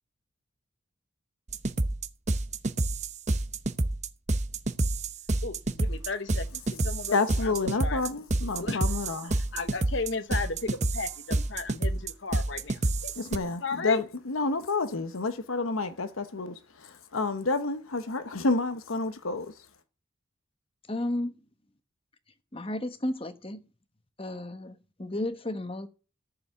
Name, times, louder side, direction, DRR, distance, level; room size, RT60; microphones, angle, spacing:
sound 1, 1.5-13.4, right 2 dB, 35° right, 0.8 m, -28 dB
voice 1, 5.4-8.0 8.6-8.8 9.5-14.0, left 4 dB, 60° left, 1.0 m, -35 dB
voice 2, 7.1-9.4 13.1-19.7, left 3 dB, 85° left, 1.0 m, -29 dB
voice 3, 20.9-21.4 22.5-23.6 24.2-25.9, left 1 dB, 25° left, 1.1 m, -33 dB
14.0 x 7.0 x 9.3 m
head